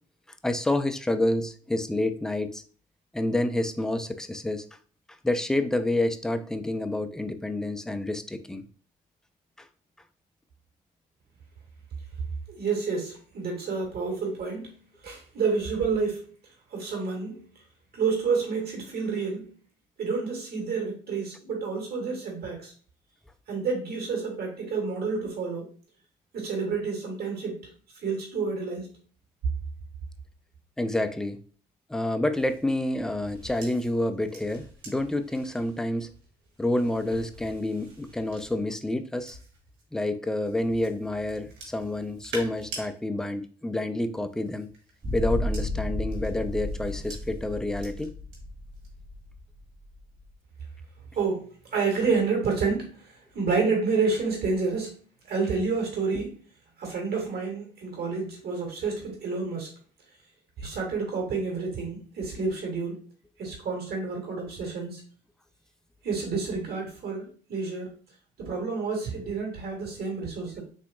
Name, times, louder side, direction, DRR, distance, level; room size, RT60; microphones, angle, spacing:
voice 1, 0.4-2.6 3.1-4.6 5.2-8.6 9.6-9.7 30.8-31.4 31.9-36.1 36.6-39.4 39.9-44.7 45.1-48.1, left 1 dB, 5° left, 0.3 m, -28 dB
voice 2, 12.6-14.8 15.0-16.2 16.7-17.4 17.9-19.5 20.0-22.7 23.5-25.7 26.3-27.6 28.0-28.9 51.1-51.5 51.7-53.0 53.3-54.9 55.3-56.3 56.8-59.7 60.6-63.0 63.4-65.0 66.0-67.9 68.4-70.6, right 4 dB, 55° right, 1.6 m, -29 dB
sound 1, 32.3-39.8 40.4-42.9 44.1-48.4 48.7-49.1, right 2 dB, 75° right, 1.3 m, -47 dB
sound 2, 45.0-50.2, left 1 dB, 30° right, 0.8 m, -33 dB
3.5 x 2.8 x 2.2 m
hypercardioid pair, 60°, 20 cm